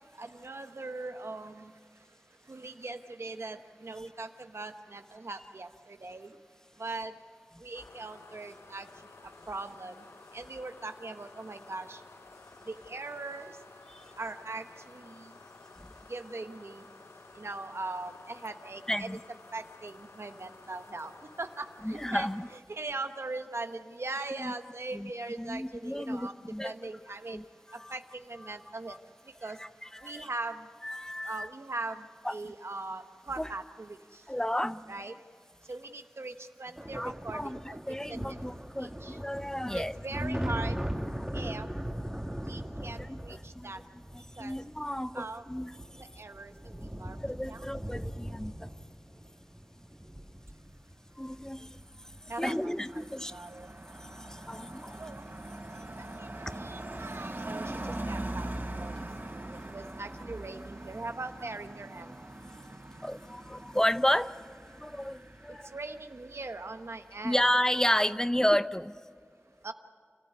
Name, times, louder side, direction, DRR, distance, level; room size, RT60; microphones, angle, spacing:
voice 1, 0.2-1.7 2.5-6.3 6.8-7.1 7.6-8.9 9.5-10.0 10.3-12.0 12.6-13.6 14.2-15.3 16.1-16.9 17.3-19.2 19.5-21.1 21.4-26.3 26.6-27.4 27.9-29.0 29.4-29.6 30.0-30.7 31.2-34.2 34.9-35.2 35.7-37.6 38.1-38.4 38.8-39.2 39.7-40.8 41.3-41.7 42.4-43.8 44.4-44.6 45.1-45.4 46.0-47.2 47.5-48.0 52.3-53.7 55.0-55.2 56.2-58.5 58.8-59.0 59.3-62.1 65.7-67.4 69.6-69.7, right 3 dB, 90° right, 8 dB, 1.1 m, -40 dB
sound 1, 7.7-22.6, left 3 dB, 80° left, 0.7 m, -53 dB
voice 2, 18.9-19.2 21.8-22.5 24.4-24.5 24.9-25.1 25.4-26.7 27.3-27.9 28.4-28.5 28.9-29.0 29.6-30.3 30.8-31.5 32.2-32.3 33.4-33.5 34.3-34.9 37.0-40.5 41.2-41.3 42.9-43.7 44.1-46.0 47.2-48.7 51.2-51.8 52.4-53.3 54.0-55.0 56.5-56.6 63.0-64.4 64.8-65.7 67.2-69.0, equal, 15° left, 13 dB, 0.6 m, -32 dB
sound 2, 36.8-52.5 53.7-53.9 54.2-54.9, equal, 10° right, 1.9 m, -40 dB
Car passing by, 51.8-66.6 66.8-67.2, right 1 dB, 50° right, 3.8 m, -42 dB
28.5 x 15.0 x 9.3 m, 2.4 s
wide cardioid pair, 55°, 4 cm